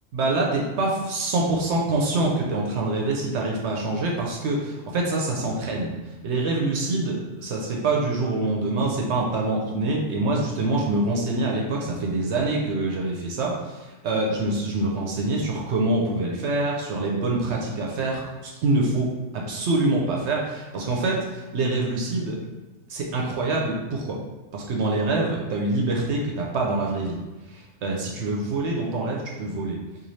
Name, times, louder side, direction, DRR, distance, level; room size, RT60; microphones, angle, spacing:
voice 1, 0.1-5.9 6.2-19.1 19.3-22.4 22.9-24.2 24.5-27.2 27.5-29.8, right 2 dB, 70° right, -1 dB, 0.8 m, -25 dB
3.1 x 2.6 x 4.0 m, 1.1 s
omnidirectional pair, 1.3 m